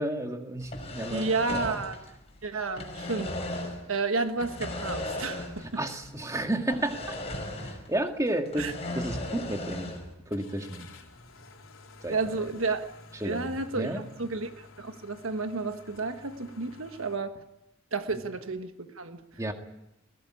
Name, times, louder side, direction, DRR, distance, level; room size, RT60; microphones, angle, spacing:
voice 1, 0.0-1.7 5.6-7.2 7.6-10.0 10.3-10.9 12.0-12.2 13.2-14.0 19.4-19.5, right 1 dB, 15° right, 4 dB, 2.0 m, -32 dB
sound 1, 0.6-2.4 2.6-3.9 4.4-5.8 6.0-6.1 6.7-8.0 8.3-10.1, left 1 dB, 30° left, 5.0 m, -36 dB
voice 2, 1.1-2.0 2.4-5.8 8.6-8.7 12.1-12.8 13.2-17.4 17.9-19.2, right 3 dB, 70° right, 8 dB, 1.4 m, -31 dB
sound 2, 10.3-17.2, left 3 dB, 70° left, 3.5 m, -52 dB
21.0 x 17.0 x 9.8 m, 0.89 s
head